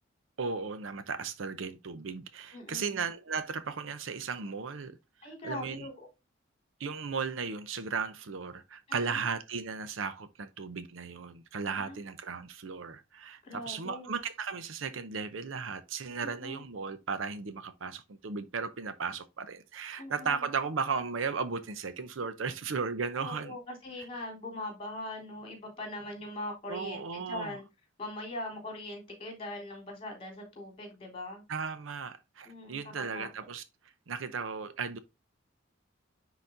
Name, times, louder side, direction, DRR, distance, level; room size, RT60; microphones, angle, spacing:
voice 1, 0.4-5.0 5.4-5.9 6.8-23.6 26.7-27.6 31.5-33.6 34.1-35.0, right 5 dB, 80° right, 0.7 m, -36 dB
voice 2, 2.5-3.0 5.2-6.1 8.9-9.2 11.8-12.0 13.4-14.1 16.2-16.6 20.0-20.4 23.2-27.6 28.0-31.4 32.4-33.3, left 1 dB, 30° left, 3.6 m, -41 dB
9.9 x 4.0 x 2.6 m
head